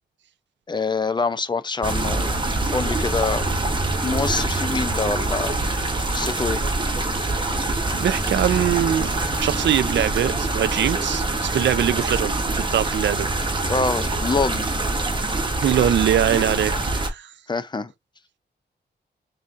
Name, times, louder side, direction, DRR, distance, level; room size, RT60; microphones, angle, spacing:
voice 1, 0.7-2.4 2.7-3.5 4.0-5.6 6.1-6.6 13.7-14.7 17.5-17.9, left 4 dB, 25° left, 0.4 m, -25 dB
sound 1, 1.8-17.1, right 2 dB, 25° right, 0.9 m, -25 dB
voice 2, 8.0-9.1 9.4-13.6 15.6-17.3, right 10 dB, 85° right, 0.4 m, -22 dB
5.5 x 2.6 x 2.5 m
wide cardioid pair, 115°, 18 cm